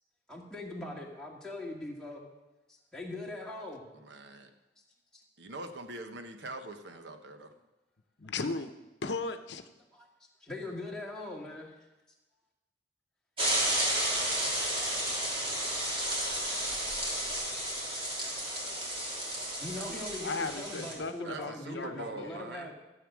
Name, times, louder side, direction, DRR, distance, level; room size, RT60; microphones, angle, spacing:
voice 1, 0.3-2.3 2.7-3.8 5.1-5.2 9.9-10.1 10.4-11.7 19.6-22.7, left 2 dB, 5° left, -3 dB, 2.0 m, -41 dB
voice 2, 3.9-4.5 5.4-7.5 21.2-22.7, right 2 dB, 70° right, 6 dB, 1.1 m, -43 dB
voice 3, 8.2-8.7 9.0-9.6 20.2-22.4, left 3 dB, 70° left, 8 dB, 0.8 m, -36 dB
sound 1, 13.4-20.9, right 1 dB, 30° right, 3.0 m, -32 dB
14.0 x 7.8 x 6.2 m, 1.0 s
head